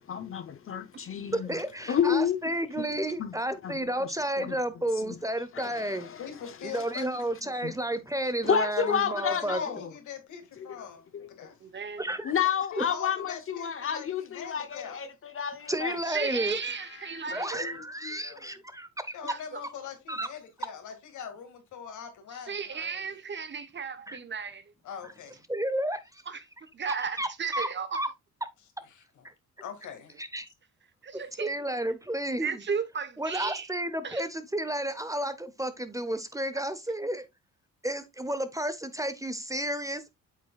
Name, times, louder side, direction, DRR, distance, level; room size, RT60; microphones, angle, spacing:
voice 1, 0.0-1.6 1.9-2.4 3.2-3.3 3.6-3.7 4.0-4.6 5.0-5.2 5.5-6.2 7.6-7.7 8.4-9.9 10.8-10.9 11.1-11.3 12.2-16.0 16.6-17.3 17.6-17.8 18.0-18.4, left 8 dB, 45° left, 0.8 m, -31 dB
voice 2, 1.3-6.1 6.6-9.6 12.0-12.3 12.8-12.9 15.7-16.6 17.3-19.1 20.1-20.3 24.1-24.2 25.5-26.2 26.9-27.7 27.9-28.1 29.2-29.3 30.2-30.5 31.1-32.6 33.2-37.3 37.8-40.2, right 1 dB, 10° right, 0.8 m, -32 dB
voice 3, 6.2-7.5 7.9-8.0 8.8-11.6 12.7-15.0 19.1-23.2 24.8-25.4 28.8-29.3 29.6-30.1, left 7 dB, 75° left, 2.1 m, -42 dB
voice 4, 11.6-12.0 16.1-17.7 19.2-19.6 22.5-24.6 26.3-26.4 26.7-28.0 31.0-31.5 32.4-33.7 34.0-34.2, right 6 dB, 40° right, 1.1 m, -34 dB
8.3 x 6.1 x 2.3 m
cardioid pair, 90°, 30 cm